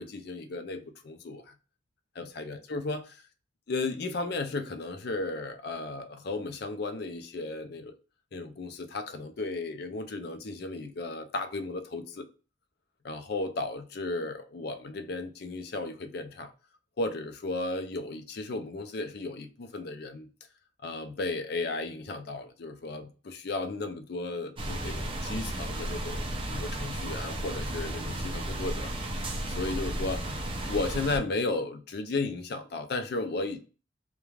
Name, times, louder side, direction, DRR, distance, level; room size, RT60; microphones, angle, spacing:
voice 1, 0.0-1.6 2.2-3.2 3.7-7.9 8.3-12.3 13.0-16.5 17.0-20.3 20.8-28.9 29.6-33.6, left 3 dB, 55° left, 0.4 m, -34 dB
sound 1, 24.6-31.2, right 1 dB, 30° right, 0.4 m, -34 dB
2.4 x 2.2 x 3.0 m
head